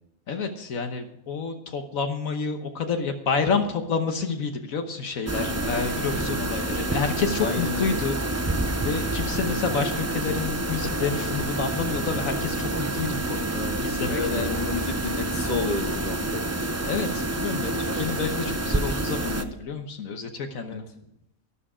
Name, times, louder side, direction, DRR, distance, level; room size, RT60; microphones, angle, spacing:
voice 1, 0.3-8.5 8.8-14.6 16.8-20.8, left 5 dB, 75° left, 6 dB, 1.4 m, -29 dB
sound 1, 5.3-19.4, right 2 dB, 20° right, 0.4 m, -28 dB
voice 2, 7.4-8.0 14.0-16.5 20.6-20.8, left 3 dB, 30° left, 4 dB, 1.6 m, -31 dB
12.5 x 11.5 x 5.0 m, 0.79 s
omnidirectional pair, 1.5 m